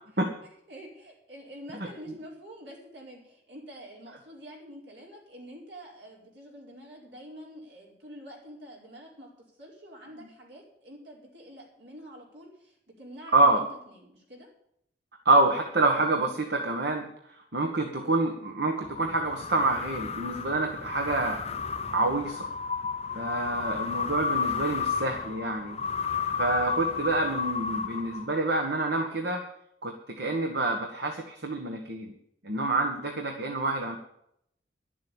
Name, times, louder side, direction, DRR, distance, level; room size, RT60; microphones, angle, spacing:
voice 1, 0.7-9.3 9.6-14.5, equal, 80° right, -2 dB, 4.9 m, -47 dB
voice 2, 13.3-13.6 15.2-17.1 17.5-21.4 21.9-22.5 23.1-25.8 26.3-29.4 29.8-32.1 32.4-34.0, right 2 dB, 65° right, 3 dB, 1.5 m, -27 dB
sound 1, 18.8-28.6, left 6 dB, 35° left, 0.7 m, -32 dB
12.0 x 7.6 x 8.6 m, 0.74 s
head